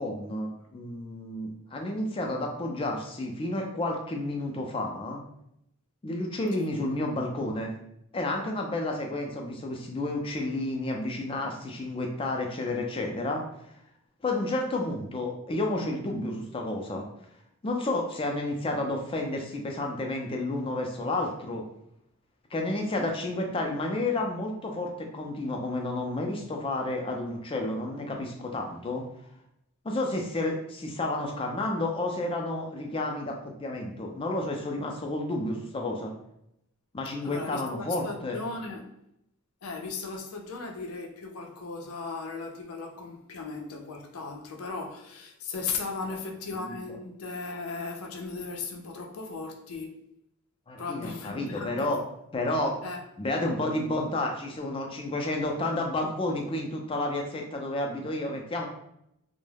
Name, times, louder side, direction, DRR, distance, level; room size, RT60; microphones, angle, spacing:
voice 1, 0.0-5.2 6.0-7.7 8.1-13.4 14.2-17.1 17.6-21.7 22.5-29.1 29.8-36.1 36.9-38.4 46.6-46.8 50.7-52.0 52.3-52.8 53.2-58.7, left 2 dB, 25° left, 0.3 m, -31 dB
voice 2, 37.2-38.9 39.6-49.9 50.8-51.9 52.8-53.0, left 4 dB, 85° left, 0.5 m, -37 dB
2.2 x 2.0 x 3.2 m
head